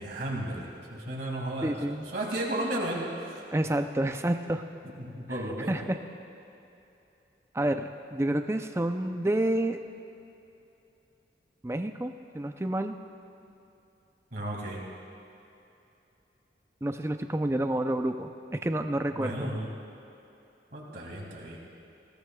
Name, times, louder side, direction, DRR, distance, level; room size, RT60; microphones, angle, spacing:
voice 1, 0.0-1.8 2.1-3.4 5.0-5.7 14.3-14.8 19.1-19.7 20.7-21.6, right 1 dB, 60° right, -2 dB, 2.2 m, -34 dB
voice 2, 1.6-2.1 3.5-4.6 5.3-5.4 5.7-6.0 7.5-9.8 11.6-13.0 16.8-19.5, right 1 dB, 15° right, 7 dB, 0.4 m, -29 dB
20.5 x 16.0 x 2.3 m, 2.8 s
head